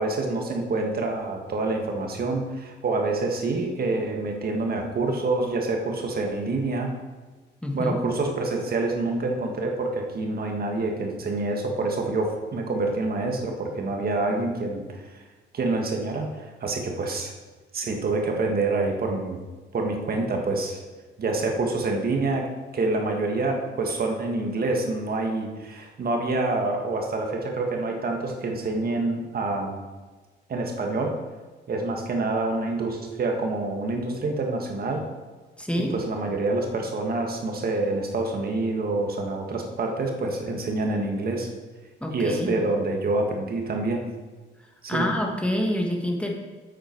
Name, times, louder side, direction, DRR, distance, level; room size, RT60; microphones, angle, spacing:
voice 1, 0.0-6.9 7.7-15.2 15.5-16.3 16.6-17.3 17.7-19.4 19.7-20.8 21.2-29.8 30.5-31.2 31.7-35.1 35.8-41.5 42.1-44.1 44.8-45.1, right 2 dB, 50° right, 2 dB, 1.6 m, -27 dB
voice 2, 7.6-8.0 35.6-35.9 42.0-42.6 44.9-46.3, left 1 dB, 5° left, 1 dB, 1.5 m, -27 dB
8.8 x 8.0 x 4.5 m, 1.3 s
cardioid pair, 90°, 20 cm